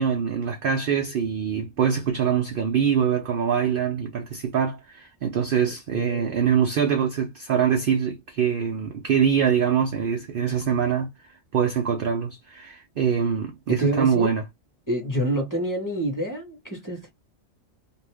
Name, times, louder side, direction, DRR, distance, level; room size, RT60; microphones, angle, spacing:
voice 1, 0.0-11.1 11.5-14.4, right 7 dB, 60° right, 0.6 m, -24 dB
voice 2, 5.9-6.4 13.7-14.3 14.9-17.1, right 1 dB, 15° left, 1.1 m, -27 dB
2.6 x 2.5 x 3.3 m
omnidirectional pair, 1.4 m